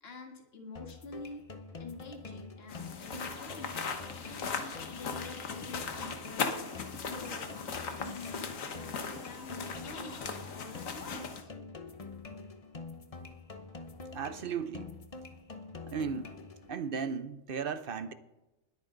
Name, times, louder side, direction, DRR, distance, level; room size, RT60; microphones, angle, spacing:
voice 1, 0.0-1.4 1.8-3.9 4.4-6.6 7.0-11.5, left 3 dB, 50° left, 1.9 m, -47 dB
sound 1, 0.8-16.8, left 3 dB, 30° left, 0.8 m, -46 dB
sound 2, 2.7-11.4, left 5 dB, 80° left, 1.6 m, -38 dB
voice 2, 14.1-14.9 15.9-16.3 16.7-18.1, right 6 dB, 50° right, 0.8 m, -35 dB
20.5 x 8.7 x 3.9 m
omnidirectional pair, 1.4 m